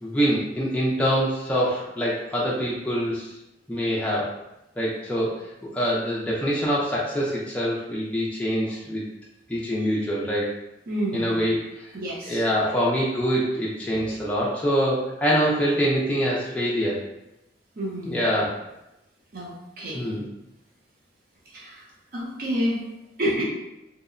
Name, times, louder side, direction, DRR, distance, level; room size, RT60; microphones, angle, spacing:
voice 1, 0.0-3.3 3.7-4.3 4.8-5.3 5.6-9.0 9.5-10.5 11.1-11.9 12.3-16.9 18.0-18.5 19.9-20.3, equal, 5° left, -6 dB, 0.4 m, -24 dB
voice 2, 10.9-11.4 11.9-12.4 17.8-18.2 19.3-20.0 21.5-21.8 22.1-22.8 23.2-23.4, equal, 50° right, -4 dB, 0.6 m, -29 dB
2.7 x 2.1 x 2.4 m, 0.91 s
head